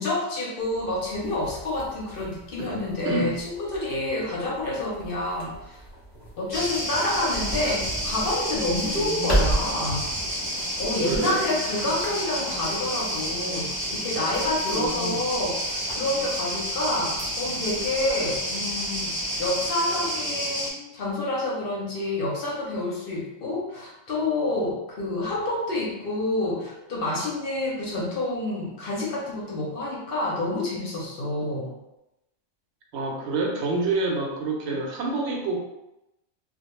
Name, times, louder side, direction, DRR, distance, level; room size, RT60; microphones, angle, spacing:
voice 1, 0.0-5.8 6.4-10.0 10.8-31.7, left 2 dB, 60° left, -3 dB, 0.6 m, -28 dB
sound 1, 0.6-19.7, right 1 dB, 25° left, 0.7 m, -36 dB
sound 2, 6.5-20.7, equal, 25° right, 0.6 m, -30 dB
voice 2, 9.0-9.3 11.0-11.4 14.7-15.2 31.4-31.6 32.9-35.6, right 3 dB, 70° right, 0 dB, 0.8 m, -28 dB
2.2 x 2.1 x 2.9 m, 0.91 s
omnidirectional pair, 1.3 m